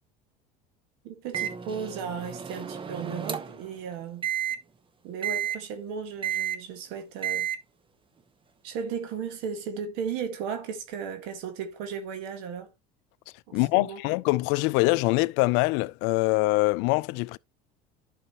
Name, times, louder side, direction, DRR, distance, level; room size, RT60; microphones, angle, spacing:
voice 1, 1.0-4.3 5.0-7.5 8.6-12.7 13.5-14.0, right 6 dB, 75° right, 1.6 m, -35 dB
Microwave oven, 1.3-3.7 4.2-4.6 5.2-5.6 6.2-6.6 7.2-7.6, right 9 dB, 25° right, 1.0 m, -31 dB
voice 2, 13.5-17.4, left 22 dB, 75° left, 0.4 m, -24 dB
11.0 x 5.6 x 2.9 m
supercardioid pair, 105°, 19 cm